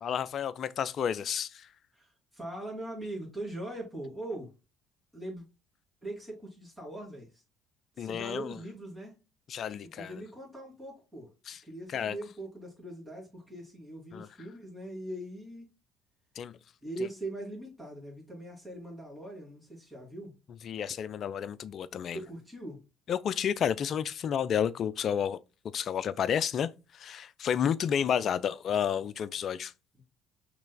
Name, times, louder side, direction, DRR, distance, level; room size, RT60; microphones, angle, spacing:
voice 1, 0.0-1.7 8.0-8.5 9.5-10.1 11.5-11.6 11.9-12.2 14.1-14.3 16.4-16.5 20.6-22.2 23.1-25.4 25.7-29.7, left 8 dB, 50° left, 0.4 m, -31 dB
voice 2, 1.9-4.5 5.1-5.4 6.0-7.4 8.0-9.2 10.0-11.3 11.6-15.7 16.8-20.3 22.1-22.8, right 1 dB, 5° left, 2.7 m, -41 dB
6.0 x 3.3 x 2.2 m
figure-of-eight pair, 55°, 0 cm